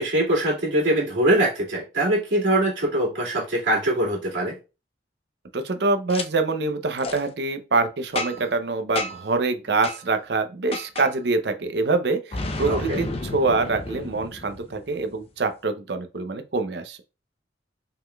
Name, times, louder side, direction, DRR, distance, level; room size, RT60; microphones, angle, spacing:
voice 1, 0.0-4.6 12.7-13.0, right 1 dB, 85° right, 2.4 m, -22 dB
voice 2, 5.5-17.0, right 3 dB, 65° right, 0.7 m, -25 dB
Boom, 6.1-6.3 7.0-7.2 8.2-8.6 9.0-9.3 9.8-10.0 10.7-11.1 12.3-15.0, left 2 dB, 35° left, 0.6 m, -31 dB
5.5 x 3.8 x 2.3 m
head